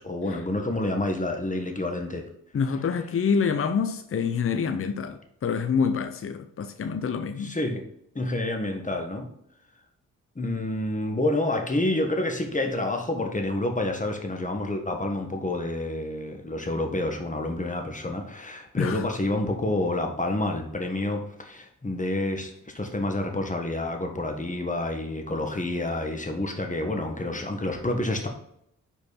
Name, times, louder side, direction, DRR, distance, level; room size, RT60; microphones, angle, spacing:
voice 1, 0.0-2.3 7.4-7.8 8.1-9.3 10.3-28.3, left 2 dB, 25° left, 1.5 m, -28 dB
voice 2, 2.5-7.5 18.8-19.0, left 6 dB, 40° left, 0.6 m, -26 dB
5.3 x 4.4 x 4.2 m
supercardioid pair, 45°, 34 cm